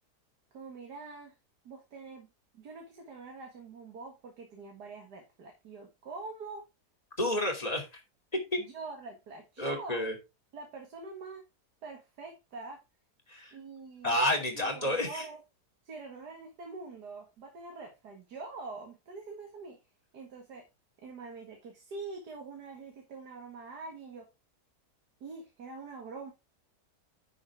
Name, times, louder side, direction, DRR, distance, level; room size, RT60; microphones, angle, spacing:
voice 1, 0.5-1.4 1.6-6.7 8.6-10.0 10.5-11.4 11.8-12.8 13.5-14.2 14.5-15.4 15.8-19.8 20.1-20.7 21.0-24.3 25.2-26.3, right 3 dB, 80° right, 3 dB, 2.2 m, -45 dB
voice 2, 7.2-8.0 8.5-8.6 9.6-10.1 13.3-13.6 14.0-15.2, left 1 dB, 25° left, 1 dB, 2.8 m, -30 dB
10.0 x 6.8 x 3.4 m, 0.25 s
omnidirectional pair, 1.7 m